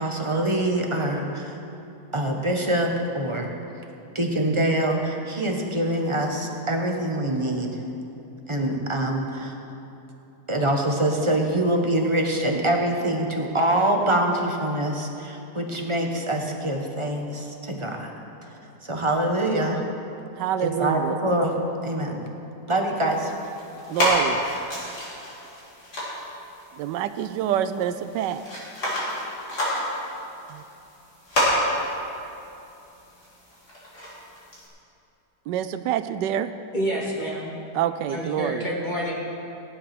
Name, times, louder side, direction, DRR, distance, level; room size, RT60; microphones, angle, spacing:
voice 1, 0.0-1.6 2.1-3.5 4.1-7.7 8.5-9.6 10.5-18.1 18.8-19.8 20.6-21.5 21.8-22.2 22.7-23.3, right 1 dB, 20° right, 1 dB, 1.2 m, -24 dB
voice 2, 20.4-21.2 23.9-24.4 26.8-28.4 30.5-30.6 35.5-36.5 37.7-38.6, right 10 dB, 85° right, 11 dB, 1.2 m, -26 dB
sound 1, 23.1-34.7, equal, 65° left, 4.1 m, -30 dB
voice 3, 36.7-37.5 38.1-39.1, equal, 25° left, -6 dB, 2.3 m, -28 dB
16.0 x 11.0 x 6.0 m, 2.9 s
omnidirectional pair, 1.8 m